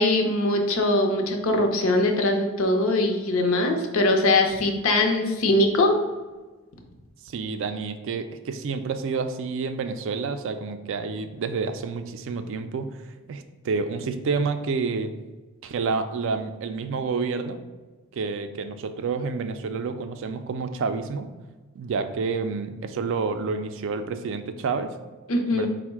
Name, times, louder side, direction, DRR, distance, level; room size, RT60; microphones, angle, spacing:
voice 1, 0.0-6.0 25.3-25.7, left 2 dB, 70° left, 3 dB, 0.6 m, -22 dB
voice 2, 7.3-12.9 13.3-15.1 15.6-17.6 18.1-21.3 21.7-24.9 25.5-25.7, right 4 dB, 60° right, 9 dB, 0.3 m, -29 dB
4.4 x 2.1 x 4.5 m, 1.2 s
head